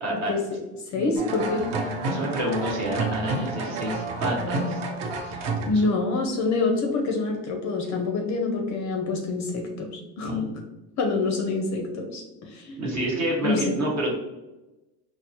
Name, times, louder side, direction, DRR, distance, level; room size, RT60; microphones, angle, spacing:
voice 1, 0.0-0.3 0.9-1.1 2.0-4.8 5.2-5.9 10.3-10.6 12.8-14.1, equal, 35° right, -2 dB, 1.1 m, -29 dB
voice 2, 0.9-1.6 5.6-10.5 11.0-12.8 13.4-13.8, left 3 dB, 40° left, 2 dB, 0.5 m, -26 dB
sound 1, 1.2-5.7, right 2 dB, 60° right, 0.7 m, -29 dB
4.2 x 2.0 x 2.7 m, 1.0 s
supercardioid pair, 115°, 45 cm